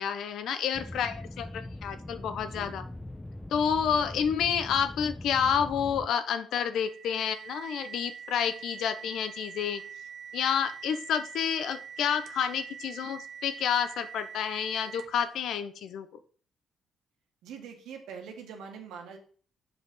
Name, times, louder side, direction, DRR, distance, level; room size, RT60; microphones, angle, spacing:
voice 1, 0.0-2.8 3.5-9.8 10.3-16.1, left 8 dB, 75° left, 11 dB, 0.9 m, -29 dB
sound 1, 0.7-6.1, left 1 dB, 10° left, 0.5 m, -41 dB
sound 2, 6.8-15.3, right 7 dB, 65° right, 0.9 m, -44 dB
voice 2, 17.4-19.2, right 6 dB, 85° right, 3 dB, 1.9 m, -43 dB
6.9 x 5.2 x 5.4 m, 0.44 s
cardioid pair, 90°, 0 cm